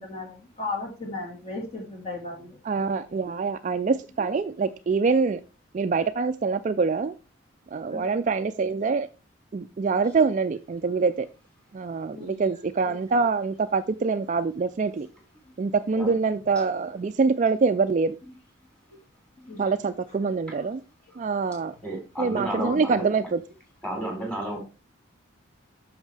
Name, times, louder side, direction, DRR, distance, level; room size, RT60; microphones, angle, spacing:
voice 1, 0.0-2.6 7.9-8.2 12.1-12.5 16.0-16.3 19.4-19.8 20.6-20.7, left 3 dB, 35° left, 0 dB, 1.8 m, -36 dB
voice 2, 2.7-5.4 5.7-7.2 7.7-9.1 9.5-11.3 11.7-15.1 15.6-18.2 19.6-20.8 21.2-21.7 22.2-23.4, right 4 dB, 35° right, 10 dB, 0.3 m, -25 dB
voice 3, 21.8-23.0 23.8-24.6, right 1 dB, 5° left, -1 dB, 3.4 m, -32 dB
8.7 x 6.4 x 3.3 m, 0.30 s
head